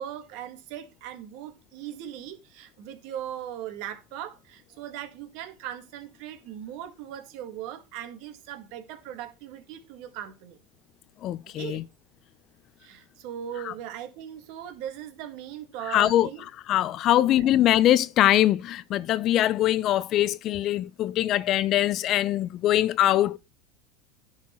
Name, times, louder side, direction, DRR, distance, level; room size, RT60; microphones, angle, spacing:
voice 1, 0.0-10.6 11.5-11.8 12.8-16.4 17.1-17.5, right 10 dB, 65° right, 1.6 m, -39 dB
voice 2, 11.2-11.8 15.9-16.3 16.7-23.4, left 13 dB, 50° left, 0.5 m, -22 dB
10.5 x 4.2 x 4.3 m
supercardioid pair, 110°, 0 cm